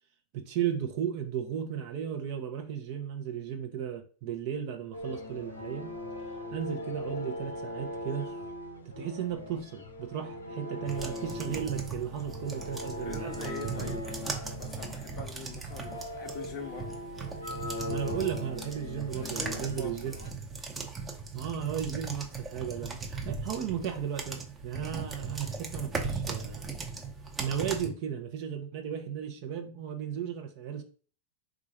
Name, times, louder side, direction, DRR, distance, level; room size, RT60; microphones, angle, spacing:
voice 1, 0.3-6.0 6.5-8.3 8.8-14.0 17.9-20.1 21.3-26.7 27.4-30.8, right 8 dB, 45° right, 0.7 m, -35 dB
sound 1, 4.9-20.3, left 1 dB, 70° left, 0.7 m, -40 dB
sound 2, 10.9-27.9, right 4 dB, 15° right, 0.8 m, -38 dB
voice 2, 13.0-17.0 19.1-20.3, left 5 dB, 35° left, 0.6 m, -43 dB
3.8 x 2.4 x 4.4 m
figure-of-eight pair, 90°, 0 cm